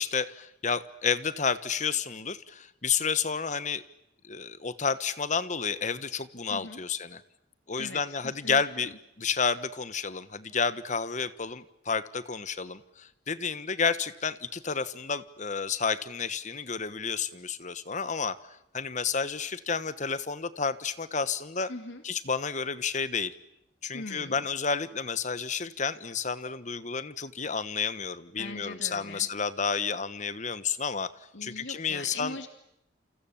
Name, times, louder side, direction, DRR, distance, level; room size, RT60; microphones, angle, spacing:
voice 1, 0.0-3.8 4.3-7.2 7.7-8.9 9.2-18.4 18.7-21.7 22.0-23.3 23.8-31.1 31.4-32.4, left 5 dB, 40° left, 14 dB, 1.2 m, -31 dB
voice 2, 6.5-6.8 7.7-9.0 21.7-22.0 23.9-24.5 28.4-29.3 31.3-32.5, left 2 dB, 85° left, 6 dB, 2.4 m, -41 dB
29.0 x 27.5 x 7.3 m, 0.81 s
head